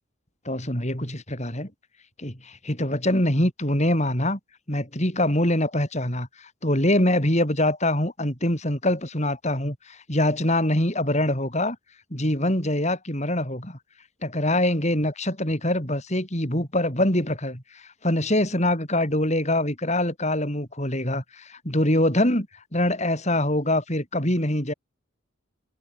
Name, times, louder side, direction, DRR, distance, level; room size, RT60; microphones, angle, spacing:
voice 1, 0.5-1.7 2.2-4.4 4.7-11.8 12.1-13.8 14.2-24.7, left 1 dB, 30° left, 6.8 m, -24 dB
head